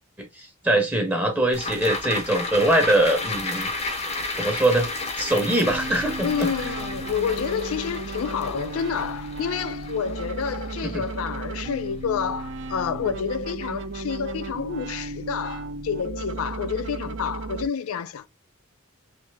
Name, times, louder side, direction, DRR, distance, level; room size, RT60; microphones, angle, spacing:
voice 1, 0.2-3.7 4.4-4.9 5.2-6.7 10.8-11.0, right 1 dB, 10° right, 0.6 m, -23 dB
sound 1, 1.5-12.0 12.4-12.5, left 2 dB, 30° left, 0.6 m, -33 dB
sound 2, 5.6-17.7, right 3 dB, 60° right, 0.5 m, -35 dB
voice 2, 6.2-18.3, left 7 dB, 85° left, 0.4 m, -29 dB
3.2 x 2.7 x 3.3 m
head